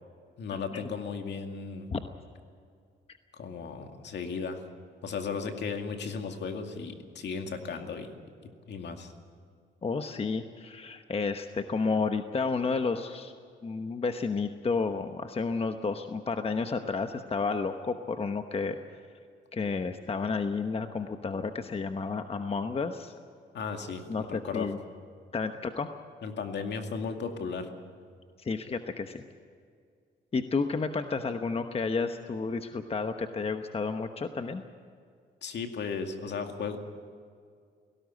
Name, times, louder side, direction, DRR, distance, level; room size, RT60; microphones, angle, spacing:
voice 1, 0.4-1.9 3.3-4.6 5.0-8.2 8.4-9.1 23.5-24.7 26.2-27.7 35.4-36.8, left 5 dB, 60° left, 5 dB, 2.3 m, -35 dB
voice 2, 9.8-13.3 13.6-18.8 19.5-23.1 24.1-24.8 25.3-25.9 28.4-29.2 30.3-34.6, left 4 dB, 30° left, 7 dB, 1.0 m, -31 dB
17.5 x 17.0 x 9.6 m, 2.2 s
cardioid pair, 90°, 20 cm